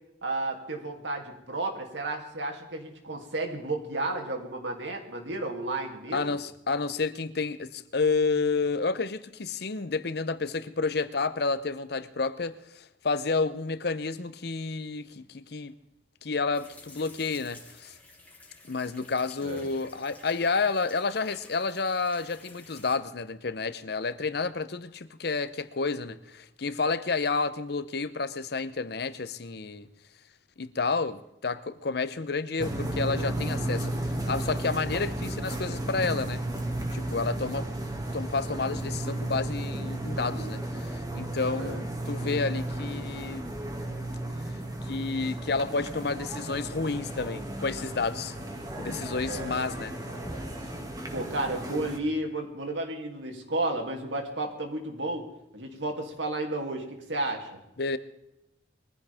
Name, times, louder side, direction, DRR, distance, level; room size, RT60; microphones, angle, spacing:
voice 1, 0.2-6.4 19.4-19.7 41.5-41.8 49.3-49.5 51.1-55.3 55.5-57.6, right 2 dB, 85° right, 2.9 m, -32 dB
voice 2, 6.1-15.8 16.2-18.0 18.7-29.9 30.6-36.4 36.9-43.5 44.8-48.4 48.8-49.9 57.8-58.0, left 4 dB, 60° left, 0.8 m, -30 dB
sound 1, 16.5-22.9, left 3 dB, 10° left, 3.0 m, -52 dB
sound 2, 32.6-52.0, right 1 dB, 20° right, 2.2 m, -34 dB
22.5 x 15.0 x 3.6 m
head